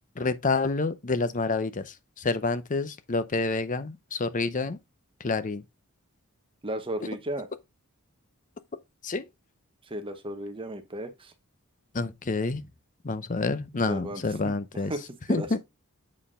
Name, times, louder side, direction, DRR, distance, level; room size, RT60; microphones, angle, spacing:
voice 1, 0.2-4.8 5.2-5.6 9.0-9.3 11.9-12.6 13.0-14.9 15.3-15.6, left 3 dB, 35° left, 0.7 m, -28 dB
voice 2, 6.6-7.5 9.8-11.3 13.9-14.5 14.9-15.0 15.3-15.6, right 1 dB, 25° right, 0.9 m, -34 dB
7.5 x 4.4 x 3.6 m
head